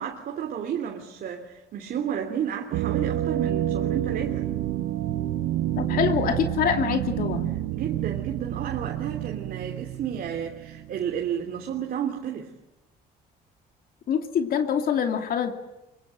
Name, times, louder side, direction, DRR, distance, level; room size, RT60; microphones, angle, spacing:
voice 1, 0.0-4.5 7.7-12.5, right 8 dB, 60° right, 3.1 m, -32 dB
sound 1, 2.7-11.4, right 13 dB, 85° right, 1.2 m, -29 dB
voice 2, 5.8-7.5 14.1-15.5, left 8 dB, 60° left, 2.7 m, -25 dB
25.0 x 23.0 x 9.0 m
cardioid pair, 110°, 17 cm